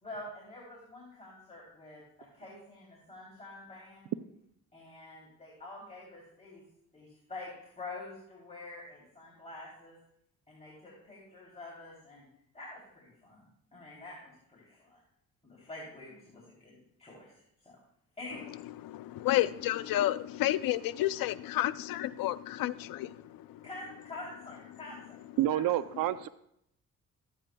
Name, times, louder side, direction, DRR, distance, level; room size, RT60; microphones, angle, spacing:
voice 1, 0.0-4.1 4.7-6.6 6.9-10.0 10.5-12.2 12.5-13.4 13.7-15.0 15.4-17.3 17.6-17.8 18.2-18.4 23.6-25.2 25.5-25.7, left 2 dB, 20° left, -4 dB, 3.1 m, -47 dB
voice 2, 18.3-23.7 24.7-24.8 25.9-26.0, left 14 dB, 90° left, 14 dB, 0.5 m, -31 dB
voice 3, 25.4-26.3, right 13 dB, 80° right, 14 dB, 0.5 m, -28 dB
14.0 x 9.1 x 2.2 m, 0.74 s
cardioid pair, 90°, 33 cm